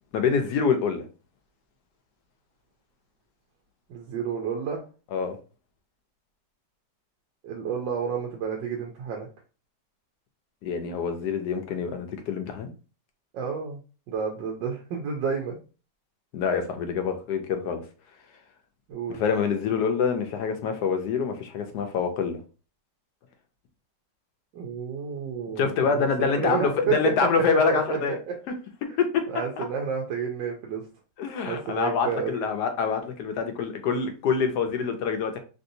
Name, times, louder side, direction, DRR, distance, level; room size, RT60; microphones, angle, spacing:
voice 1, 0.1-1.0 5.1-5.4 10.6-12.7 16.3-17.8 19.1-22.4 25.6-28.2 29.0-29.2 29.6-29.7 31.2-35.4, left 6 dB, 75° left, 6 dB, 1.1 m, -26 dB
voice 2, 3.9-4.8 7.4-9.3 13.3-13.8 14.1-15.6 18.9-19.2 24.5-27.0 27.5-28.1 29.3-30.8 31.5-32.4, right 6 dB, 85° right, 0 dB, 1.3 m, -30 dB
3.3 x 2.6 x 2.6 m, 0.35 s
omnidirectional pair, 1.9 m